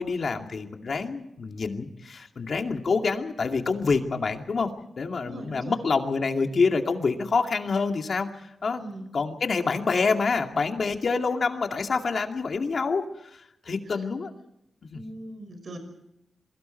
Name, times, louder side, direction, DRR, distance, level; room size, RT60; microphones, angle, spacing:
voice 1, 0.0-4.7 5.0-8.8 9.1-14.3 14.9-15.0, left 4 dB, 55° left, 4 dB, 2.4 m, -27 dB
voice 2, 5.2-5.8 8.8-9.1 13.9-14.0 14.9-15.8, right 1 dB, 55° right, 7 dB, 6.0 m, -40 dB
28.0 x 23.0 x 4.5 m, 0.84 s
wide cardioid pair, 120°, 0 cm